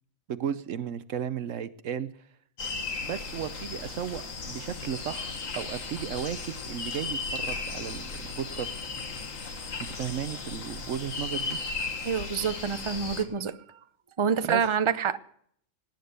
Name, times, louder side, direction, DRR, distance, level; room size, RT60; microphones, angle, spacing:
voice 1, 0.3-2.1 3.0-8.7 9.8-11.6 14.5-14.7, right 9 dB, 75° right, 14 dB, 1.1 m, -34 dB
sound 1, 2.6-13.2, left 4 dB, 85° left, 2.0 m, -36 dB
voice 2, 12.0-13.5 14.2-15.2, right 7 dB, 30° right, 12 dB, 0.7 m, -27 dB
18.5 x 9.7 x 6.6 m, 0.64 s
omnidirectional pair, 1.3 m